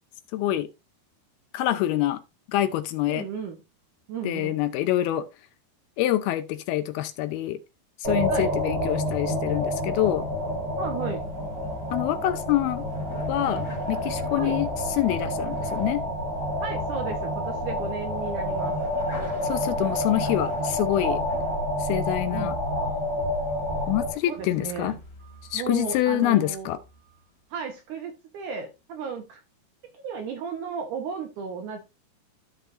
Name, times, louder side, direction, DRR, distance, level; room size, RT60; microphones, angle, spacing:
voice 1, 0.3-0.7 1.5-2.2 2.5-3.3 4.2-5.3 6.0-7.6 8.0-10.3 11.9-12.9 13.3-16.0 19.4-21.2 21.8-22.6 23.9-25.0 25.5-26.8, left 14 dB, 80° left, 2.4 m, -26 dB
voice 2, 3.1-3.6 4.1-4.6 8.3-8.5 10.8-11.3 14.4-14.6 16.6-18.7 22.3-22.6 24.3-25.0 25.5-26.7 27.5-29.4 30.0-31.8, right 6 dB, 70° right, 2.0 m, -34 dB
sound 1, 8.0-24.1, left 1 dB, 40° right, 3.3 m, -28 dB
sound 2, 9.5-26.2 26.7-27.2, left 2 dB, 25° left, 3.1 m, -45 dB
14.0 x 5.6 x 2.6 m
omnidirectional pair, 4.7 m